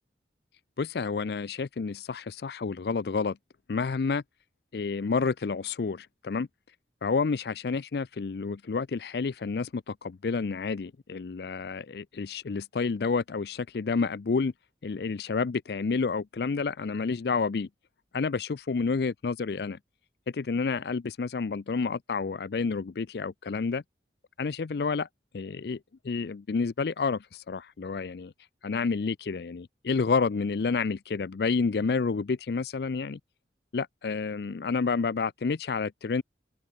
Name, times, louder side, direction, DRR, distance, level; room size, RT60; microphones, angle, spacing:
voice 1, 0.8-3.4 3.7-4.2 4.7-6.5 7.0-14.5 14.8-17.7 18.1-19.8 20.3-23.8 24.4-25.1 25.3-25.8 26.0-28.3 28.6-33.2 33.7-36.2, left 4 dB, 65° left, 0.4 m, -29 dB
open air
head